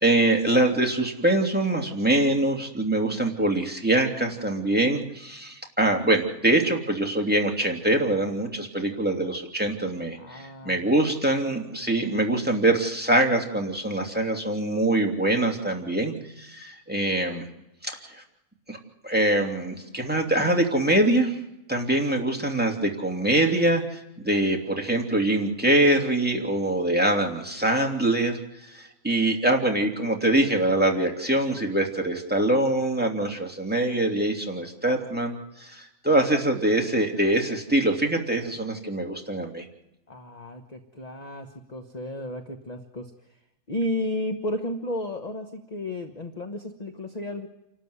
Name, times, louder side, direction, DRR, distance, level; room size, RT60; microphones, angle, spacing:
voice 1, 0.0-17.5 17.8-18.2 18.7-18.8 19.0-21.4 21.7-39.6, right 1 dB, 5° right, 2 dB, 2.8 m, -24 dB
voice 2, 10.2-10.8 11.8-12.1 40.1-43.1 43.7-47.5, left 1 dB, 30° left, 6 dB, 1.3 m, -33 dB
28.0 x 13.0 x 9.7 m, 0.90 s
omnidirectional pair, 1.6 m